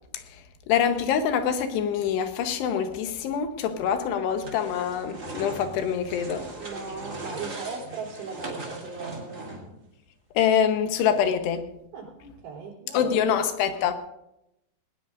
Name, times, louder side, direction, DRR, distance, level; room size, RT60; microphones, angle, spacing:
voice 1, 0.7-6.5 10.3-11.7 12.9-13.9, left 8 dB, 80° left, 3.2 m, -25 dB
sound 1, 4.4-9.8, right 2 dB, 25° right, 2.4 m, -39 dB
voice 2, 6.6-9.4 11.9-13.4, right 5 dB, 80° right, 5.4 m, -38 dB
20.0 x 19.0 x 2.5 m
omnidirectional pair, 4.8 m